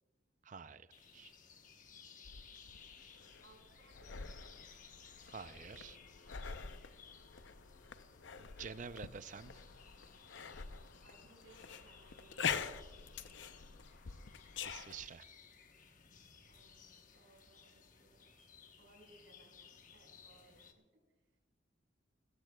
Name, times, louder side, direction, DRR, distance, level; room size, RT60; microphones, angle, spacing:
voice 1, 0.4-0.9 1.1-1.3 5.3-6.0 8.4-9.6 14.6-15.2, right 5 dB, 40° right, 13 dB, 0.5 m, -48 dB
sound 1, 0.9-20.7, left 6 dB, 40° left, 1.1 m, -60 dB
sound 2, 2.2-15.1, left 6 dB, 70° left, 0.6 m, -46 dB
voice 2, 3.4-4.3 11.0-13.1 16.5-18.3 18.8-21.4, right 1 dB, 70° right, 0 dB, 5.1 m, -66 dB
19.5 x 16.0 x 2.3 m, 1.2 s
head